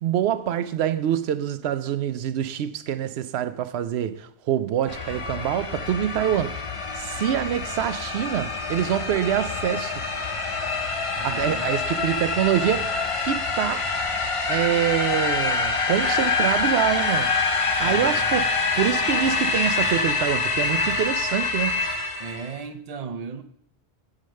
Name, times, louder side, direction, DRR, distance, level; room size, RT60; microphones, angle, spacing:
voice 1, 0.0-6.6 6.9-10.0 11.2-13.9 14.5-17.4 17.8-21.8, right 10 dB, 75° right, 0.8 m, -25 dB
sound 1, 4.9-22.6, left 4 dB, 35° left, 0.7 m, -26 dB
voice 2, 11.1-11.6 17.8-18.5 22.2-23.4, right 5 dB, 45° right, 0.6 m, -36 dB
7.6 x 5.1 x 6.3 m
omnidirectional pair, 1.1 m